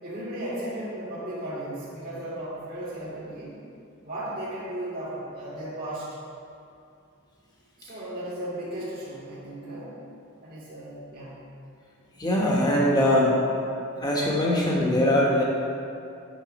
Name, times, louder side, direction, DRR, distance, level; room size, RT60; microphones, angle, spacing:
voice 1, 0.0-3.6 4.0-6.1 7.8-10.0 10.4-11.4, right 1 dB, 50° right, -10 dB, 1.9 m, -35 dB
voice 2, 12.2-13.4 14.0-15.4, left 1 dB, 20° left, -3 dB, 1.3 m, -22 dB
8.6 x 4.2 x 5.4 m, 2.6 s
head